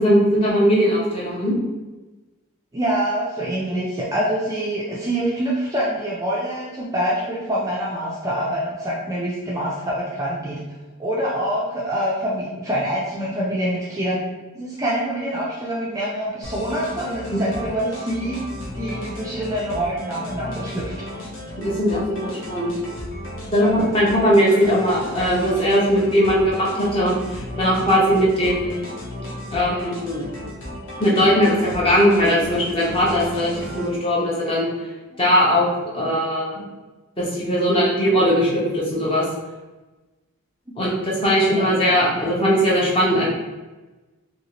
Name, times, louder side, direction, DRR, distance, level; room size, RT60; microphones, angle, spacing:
voice 1, 0.0-1.6 21.6-22.7 23.5-28.8 29.5-30.2 31.0-34.7 35.2-36.6 37.2-39.2 40.8-43.3, equal, 25° left, -5 dB, 0.7 m, -19 dB
voice 2, 2.7-10.6 11.0-14.2 14.5-18.4 18.7-21.1 23.6-23.7 41.5-41.7, right 1 dB, 15° right, -6 dB, 0.4 m, -25 dB
sound 1, 16.4-33.9, left 1 dB, 55° left, 0.8 m, -34 dB
2.7 x 2.7 x 2.9 m, 1.2 s
head